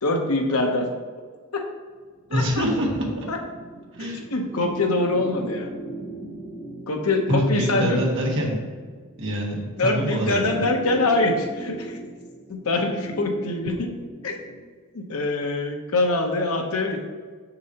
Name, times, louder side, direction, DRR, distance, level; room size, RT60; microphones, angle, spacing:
voice 1, 0.0-0.9 1.5-1.6 2.3-2.6 3.3-3.4 4.0-5.7 6.9-8.0 9.8-12.0 12.5-13.9 14.2-14.3 14.9-17.0, left 2 dB, 75° left, 2 dB, 0.9 m, -24 dB
sound 1, 2.2-14.7, right 1 dB, 5° right, 1.3 m, -39 dB
voice 2, 2.3-3.3 3.9-4.2 7.3-8.6 9.2-10.6, equal, 60° right, -2 dB, 1.3 m, -25 dB
6.7 x 6.7 x 2.9 m, 1.6 s
head